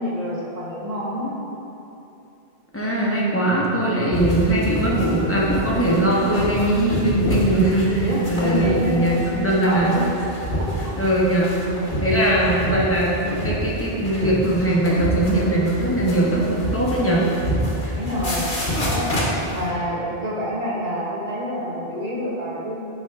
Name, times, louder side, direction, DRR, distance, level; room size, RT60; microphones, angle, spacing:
voice 1, 0.0-1.4 8.0-10.1 10.6-10.9 12.1-12.4 17.9-18.5 18.8-19.1 19.5-22.8, equal, 40° right, -6 dB, 1.3 m, -27 dB
voice 2, 2.7-9.9 11.0-11.6 12.0-17.2, right 1 dB, 15° left, -5 dB, 1.0 m, -20 dB
sound 1, 4.1-19.7, equal, 60° left, 1.5 m, -28 dB
8.7 x 4.6 x 3.5 m, 2.9 s
omnidirectional pair, 1.1 m